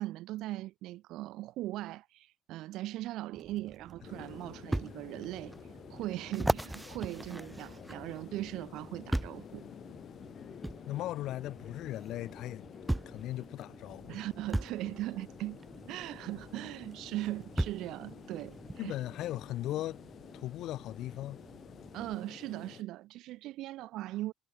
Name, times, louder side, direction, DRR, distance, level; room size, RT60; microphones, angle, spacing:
voice 1, 0.0-5.5 5.9-9.6 14.1-15.6 15.9-18.9 21.9-24.3, right 16 dB, 65° right, 1.9 m, -39 dB
sound 1, 3.3-22.2, right 5 dB, 25° right, 5.0 m, -55 dB
sound 2, 3.6-3.7 4.7-4.9 5.5-5.6 6.3-8.2 9.1-9.5 10.6-10.8 12.1-12.2 12.9-13.2 14.5-14.8 16.4-16.5 17.6-17.9 18.7-18.8, right 1 dB, 5° right, 1.0 m, -33 dB
sound 3, 4.0-22.8, left 9 dB, 35° left, 2.8 m, -51 dB
voice 2, 10.8-12.7 13.1-14.2 18.8-20.0 20.3-21.4, left 14 dB, 55° left, 2.4 m, -38 dB
cardioid pair, 160°, 0 cm